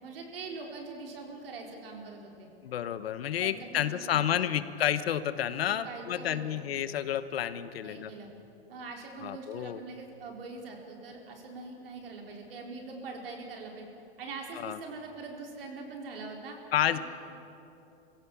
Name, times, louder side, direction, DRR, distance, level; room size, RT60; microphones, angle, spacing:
voice 1, 0.0-2.5 3.4-4.6 5.7-6.7 7.8-8.3 8.7-13.9 14.2-16.6 16.9-17.0, right 3 dB, 65° right, 1 dB, 4.2 m, -43 dB
voice 2, 2.6-8.1 9.2-9.8 14.6-14.8 16.7-17.0, left 10 dB, 70° left, 13 dB, 1.1 m, -30 dB
23.5 x 16.5 x 7.2 m, 2.8 s
supercardioid pair, 175°, 31 cm